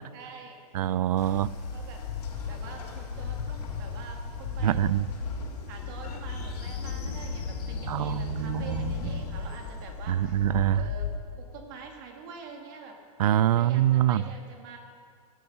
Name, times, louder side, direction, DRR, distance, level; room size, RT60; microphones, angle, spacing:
voice 1, 0.1-0.6 1.7-2.0 2.5-4.9 5.7-13.0 13.5-14.8, right 5 dB, 35° right, 2 dB, 2.0 m, -45 dB
voice 2, 0.7-1.5 4.6-5.0 7.9-8.9 10.1-10.8 13.2-14.2, right 12 dB, 70° right, 19 dB, 0.5 m, -24 dB
Train, 1.2-11.2, left 5 dB, 90° left, 3.7 m, -35 dB
17.5 x 11.0 x 6.8 m, 2.2 s
supercardioid pair, 175°, 20 cm